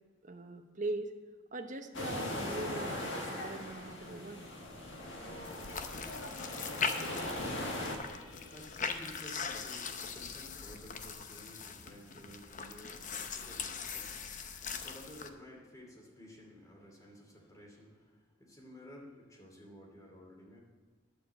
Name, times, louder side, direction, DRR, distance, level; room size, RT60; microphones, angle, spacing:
voice 1, 0.2-1.1 1.5-4.5, right 2 dB, 40° right, 5 dB, 1.0 m, -41 dB
sound 1, 1.9-8.0, left 1 dB, 70° left, 1.6 m, -39 dB
sound 2, 5.4-15.3, left 5 dB, 40° left, 0.7 m, -41 dB
sound 3, 7.0-11.5, left 3 dB, 85° left, 1.3 m, -54 dB
voice 2, 7.1-20.6, equal, 20° left, -1 dB, 2.7 m, -54 dB
10.5 x 6.6 x 7.7 m, 1.5 s
head